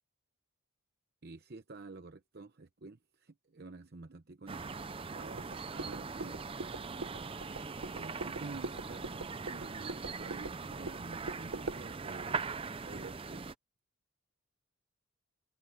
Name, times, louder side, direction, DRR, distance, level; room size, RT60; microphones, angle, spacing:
voice 1, 1.2-4.7 5.1-6.4 7.9-12.4 12.8-13.4, right 3 dB, 50° right, 0.8 m, -49 dB
sound 1, 4.5-13.5, right 4 dB, 25° right, 0.5 m, -41 dB
sound 2, 5.4-11.8, right 3 dB, 80° right, 1.1 m, -44 dB
open air
head